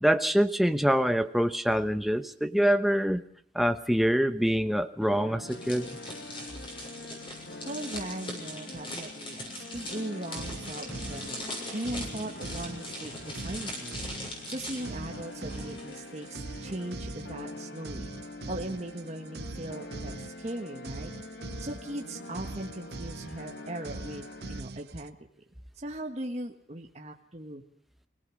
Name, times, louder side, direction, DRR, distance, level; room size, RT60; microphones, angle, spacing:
voice 1, 0.0-3.2 3.5-5.9, equal, ahead, 9 dB, 0.9 m, -25 dB
sound 1, 5.0-24.6, left 2 dB, 70° left, 1.3 m, -45 dB
sound 2, 5.5-16.3 16.6-16.8, left 1 dB, 30° left, 6.7 m, -41 dB
voice 2, 7.6-14.0 14.5-18.1 18.5-21.1 21.6-25.2 25.7-27.6, right 1 dB, 35° right, 3 dB, 1.5 m, -39 dB
sound 3, 9.7-25.1, right 3 dB, 60° right, 0.8 m, -43 dB
24.0 x 17.5 x 6.4 m, 0.66 s
head